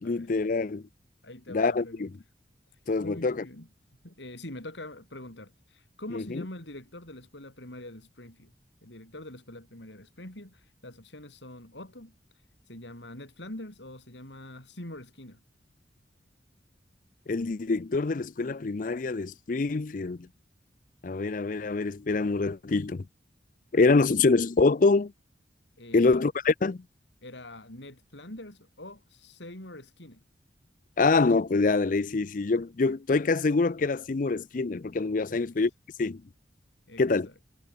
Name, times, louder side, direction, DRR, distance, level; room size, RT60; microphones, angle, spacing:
voice 1, 0.0-0.9 1.5-2.1 2.9-3.5 6.1-6.4 17.3-20.3 21.0-23.1 23.7-25.1 25.9-26.8 31.0-35.7 36.0-36.2 37.0-37.3, left 3 dB, 45° left, 0.5 m, -25 dB
voice 2, 1.2-2.1 3.0-3.7 4.0-8.5 8.8-12.2 12.7-15.4 25.8-26.2 27.2-30.2 35.3-35.6 36.9-37.3, left 1 dB, 80° left, 5.6 m, -44 dB
head